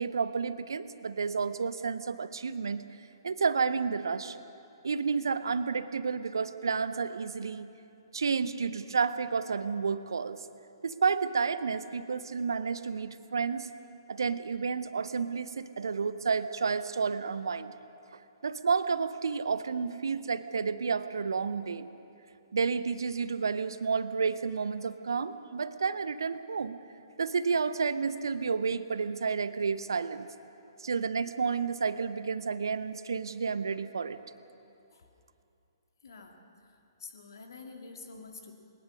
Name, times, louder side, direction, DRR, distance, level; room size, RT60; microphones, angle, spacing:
voice 1, 0.0-2.8 3.2-4.4 4.8-7.7 8.1-10.5 10.8-13.7 14.1-17.7 18.4-21.9 22.5-26.8 27.2-30.3 30.8-34.2, right 5 dB, 60° right, 13 dB, 0.8 m, -31 dB
voice 2, 36.0-36.4 36.7-38.5, left 4 dB, 55° left, 3 dB, 2.4 m, -48 dB
21.0 x 20.0 x 6.5 m, 2.7 s
figure-of-eight pair, 125°, 2 cm